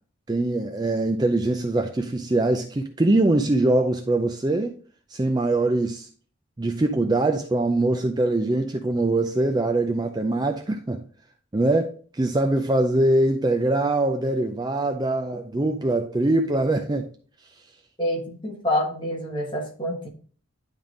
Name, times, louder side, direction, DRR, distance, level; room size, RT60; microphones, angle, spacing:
voice 1, 0.3-4.8 5.1-6.1 6.6-11.0 11.5-17.1, right 2 dB, 20° right, 0.4 m, -23 dB
voice 2, 18.0-20.1, left 1 dB, 20° left, 1.5 m, -27 dB
10.5 x 3.6 x 3.8 m
head